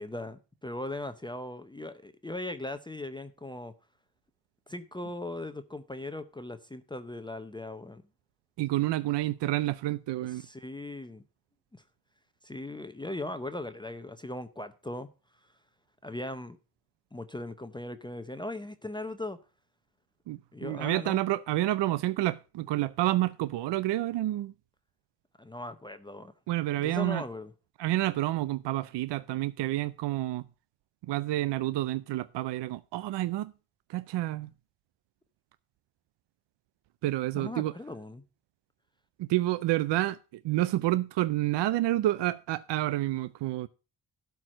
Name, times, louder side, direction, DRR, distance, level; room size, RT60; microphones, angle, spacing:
voice 1, 0.0-3.7 4.7-8.0 10.2-11.2 11.7-11.8 12.4-15.1 16.0-16.6 17.1-19.4 20.5-21.2 25.4-26.3 26.8-27.5 37.3-38.2, left 2 dB, 10° left, 0.7 m, -39 dB
voice 2, 8.6-10.5 20.3-24.5 26.5-27.2 27.8-30.4 31.1-33.5 33.9-34.5 37.0-37.7 39.2-40.2 40.4-43.7, right 15 dB, 75° right, 0.6 m, -29 dB
12.0 x 4.7 x 7.3 m
cardioid pair, 125°, 42 cm